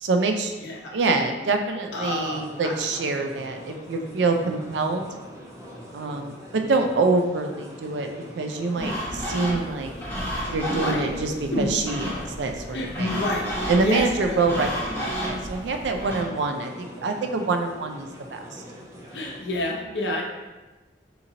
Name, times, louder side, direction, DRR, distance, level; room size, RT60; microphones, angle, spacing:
voice 1, 0.0-5.0 5.9-8.1 8.4-9.9 10.5-13.1 13.7-18.6, right 3 dB, 80° right, 4 dB, 0.4 m, -26 dB
voice 2, 0.6-0.9 1.9-2.7 10.7-11.1 11.5-11.7 12.7-13.5 13.8-14.4 19.1-20.2, left 1 dB, 75° left, -1 dB, 0.7 m, -28 dB
sound 1, 2.0-19.4, equal, 15° right, 0.5 m, -43 dB
sound 2, 8.8-16.2, equal, 10° left, 0.9 m, -32 dB
3.8 x 2.9 x 2.7 m, 1.2 s
head